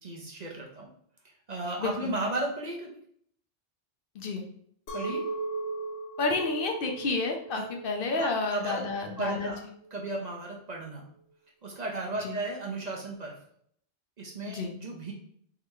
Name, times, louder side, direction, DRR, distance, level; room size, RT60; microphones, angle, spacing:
voice 1, 0.0-0.9 1.5-2.9 4.9-5.2 7.5-7.6 8.2-8.8 9.2-9.6 9.9-11.0 11.6-13.3 14.2-15.1, right 2 dB, 45° right, -1 dB, 0.8 m, -34 dB
voice 2, 1.8-2.1 4.2-4.4 6.2-9.5 12.2-12.4 14.5-14.7, left 3 dB, 65° left, 3 dB, 0.8 m, -30 dB
Chink clink, 4.9-10.1, right 3 dB, 85° left, 1.1 m, -38 dB
3.6 x 3.3 x 3.0 m, 0.64 s
omnidirectional pair, 1.1 m